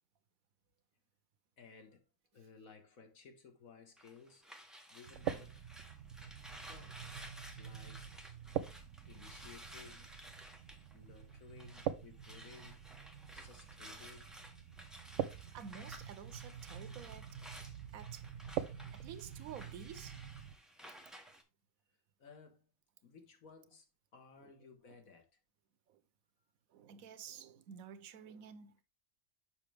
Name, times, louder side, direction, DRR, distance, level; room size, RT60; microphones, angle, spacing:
voice 1, 1.6-2.1 2.3-4.4 4.9-5.6 6.7-7.1 7.6-8.1 9.1-10.1 10.9-12.8 13.3-14.4 22.2-22.7 23.0-23.9 24.1-25.3, left 5 dB, 85° left, 1.8 m, -58 dB
sound 1, 4.0-11.9 12.2-21.4, equal, ahead, 0.9 m, -55 dB
sound 2, 5.1-20.6, right 9 dB, 70° right, 0.9 m, -45 dB
voice 2, 15.5-17.4 17.9-18.3 18.9-20.2 24.4-24.5 24.9-25.0 25.9-26.0 26.7-28.8, right 8 dB, 90° right, 1.2 m, -51 dB
6.8 x 5.7 x 3.3 m
omnidirectional pair, 1.4 m